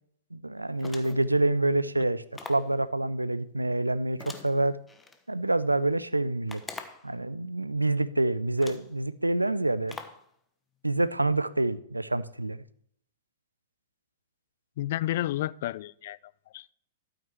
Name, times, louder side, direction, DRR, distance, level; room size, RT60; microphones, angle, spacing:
voice 1, 0.3-2.2 2.5-4.8 5.3-6.6 7.0-10.0 10.8-12.6, right 2 dB, 90° right, 0.5 m, -27 dB
sound 1, 0.8-1.3 2.3-2.7 4.2-5.2 6.5-7.1 8.0-8.1 8.6-8.9 9.9-10.3, left 4 dB, 10° left, 1.0 m, -43 dB
voice 2, 14.8-16.2 16.5-16.7, left 14 dB, 50° left, 0.3 m, -31 dB
12.0 x 8.7 x 3.2 m
figure-of-eight pair, 105°, 0 cm